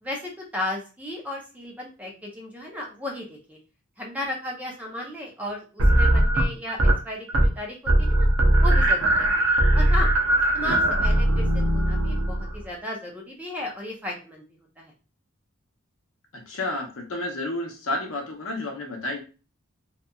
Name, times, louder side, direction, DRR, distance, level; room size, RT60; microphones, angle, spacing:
voice 1, 0.0-3.6 4.0-7.3 7.6-8.3 8.6-9.4 9.7-10.1 10.5-14.4 14.8-14.9, left 1 dB, 10° right, -1 dB, 0.5 m, -34 dB
sound 1, 5.8-7.0 7.3-7.6 7.9-12.6, right 1 dB, 70° right, 0.6 m, -20 dB
voice 2, 16.3-19.2, left 2 dB, 70° left, 2 dB, 0.7 m, -31 dB
2.8 x 2.3 x 2.3 m, 0.33 s
head